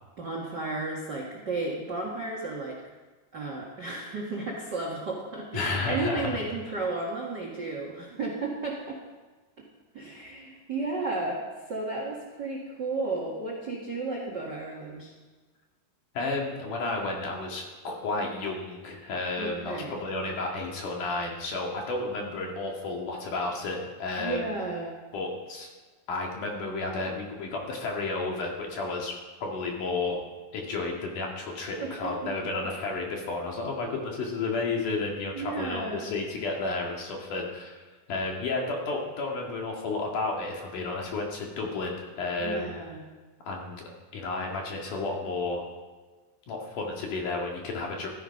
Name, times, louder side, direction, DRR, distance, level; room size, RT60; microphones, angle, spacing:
voice 1, 0.2-2.8 3.3-9.0 9.6-9.7 9.9-15.1 19.3-19.9 24.2-25.0 31.8-32.5 35.3-36.1 42.4-43.0, right 3 dB, 45° right, -1 dB, 1.3 m, -33 dB
voice 2, 5.5-6.3 16.1-24.5 25.1-25.7 26.1-30.2 30.5-37.7 38.1-42.8 43.4-43.8 44.1-45.7 46.5-48.1, left 3 dB, 55° left, 0 dB, 3.3 m, -32 dB
14.5 x 13.5 x 5.3 m, 1.3 s
omnidirectional pair, 4.7 m